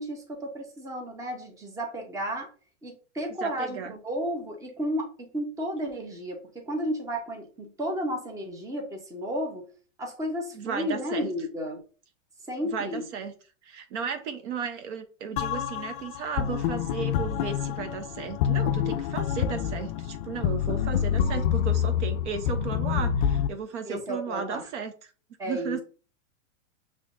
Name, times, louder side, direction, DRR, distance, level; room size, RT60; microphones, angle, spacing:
voice 1, 0.0-2.5 2.8-9.7 10.0-11.8 12.5-13.0 23.8-24.7 25.4-25.8, equal, 10° right, 2 dB, 0.8 m, -33 dB
voice 2, 3.4-3.9 10.5-11.3 12.6-13.3 13.6-25.1 25.4-25.8, right 6 dB, 60° right, 7 dB, 1.0 m, -35 dB
sound 1, 15.4-23.5, left 9 dB, 45° left, 0.4 m, -27 dB
6.0 x 3.2 x 2.6 m, 0.37 s
hypercardioid pair, 140°, 39 cm